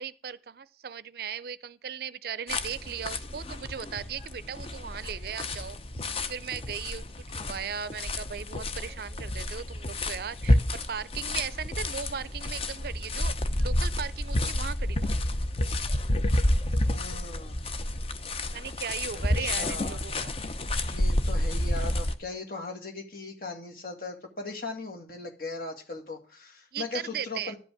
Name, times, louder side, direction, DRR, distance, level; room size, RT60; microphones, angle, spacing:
voice 1, 0.0-5.8 6.3-7.0 7.4-15.0 18.5-20.3 26.7-27.5, right 7 dB, 55° right, 0.4 m, -37 dB
sound 1, 2.5-22.1, left 1 dB, 30° left, 0.7 m, -30 dB
voice 2, 16.9-17.6 19.1-20.0 20.8-27.6, left 3 dB, 50° left, 2.1 m, -38 dB
11.5 x 5.4 x 8.5 m
head